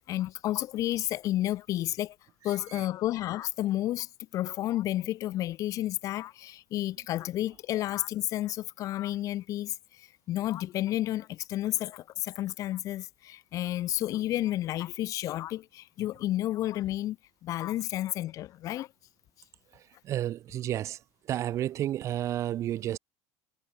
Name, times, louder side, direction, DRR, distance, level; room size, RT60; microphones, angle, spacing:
voice 1, 0.0-2.2 2.4-4.1 4.3-17.2 17.4-18.9, left 14 dB, 45° left, 4.0 m, -31 dB
voice 2, 20.0-21.0 21.3-23.0, right 12 dB, 40° right, 1.3 m, -31 dB
cardioid pair, 150°, 8 cm